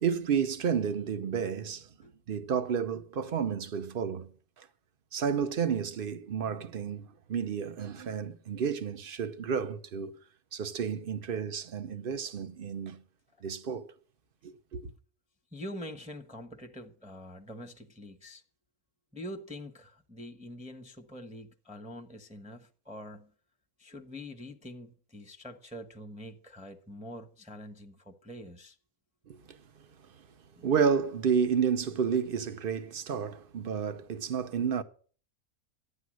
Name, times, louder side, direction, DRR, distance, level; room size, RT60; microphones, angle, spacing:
voice 1, 0.0-1.9 2.3-4.3 4.6-4.7 5.1-10.1 10.5-13.0 13.4-13.9 14.4-14.9 29.3-29.4 30.6-34.8, right 7 dB, 45° right, 0.9 m, -31 dB
voice 2, 15.5-18.4 19.1-23.3 23.8-28.8 30.6-30.7, equal, 5° right, 0.9 m, -45 dB
12.0 x 9.4 x 6.2 m
omnidirectional pair, 1.5 m